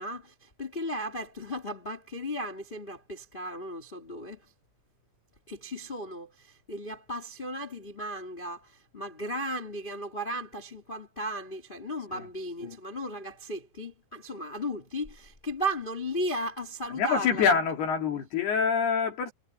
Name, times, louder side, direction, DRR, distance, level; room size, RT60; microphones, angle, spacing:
voice 1, 0.0-4.4 5.5-17.4, equal, 25° left, 1.2 m, -35 dB
voice 2, 17.0-19.3, left 6 dB, 65° left, 4.7 m, -26 dB
omnidirectional pair, 5.1 m